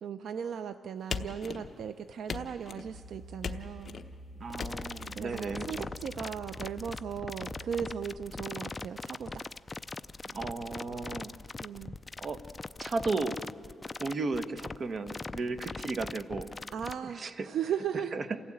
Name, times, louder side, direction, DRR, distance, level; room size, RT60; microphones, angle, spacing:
voice 1, 0.0-4.0 5.1-9.5 11.6-11.9 16.7-18.2, right 8 dB, 70° right, 11 dB, 0.5 m, -37 dB
sound 1, 1.1-1.9 2.3-2.9 3.4-4.1 4.6-5.1, left 5 dB, 45° left, 1.0 m, -38 dB
sound 2, 2.8-8.0, right 1 dB, 20° right, 5.8 m, -48 dB
voice 2, 4.4-5.9 10.2-11.4 12.2-12.4 12.8-13.4 14.0-16.5 17.1-17.5 18.1-18.2, right 3 dB, 45° right, 10 dB, 1.1 m, -34 dB
sound 3, 4.5-16.9, left 3 dB, 20° left, 0.5 m, -41 dB
28.0 x 16.0 x 8.7 m, 2.5 s
cardioid pair, 120°, 0 cm